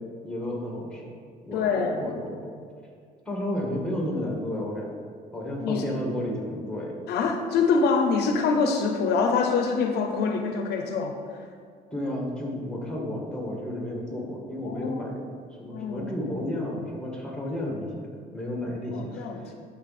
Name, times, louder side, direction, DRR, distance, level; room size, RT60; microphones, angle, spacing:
voice 1, 0.2-1.1 1.4-2.6 3.3-5.0 5.3-6.9 11.9-15.1 15.6-19.5, left 1 dB, 5° left, -1 dB, 1.9 m, -32 dB
voice 2, 1.5-2.0 5.6-5.8 7.1-11.2 14.6-15.0 15.7-16.1 18.9-19.5, left 5 dB, 75° left, 4 dB, 0.8 m, -25 dB
11.5 x 4.1 x 4.3 m, 2.1 s
cardioid pair, 110°, 17 cm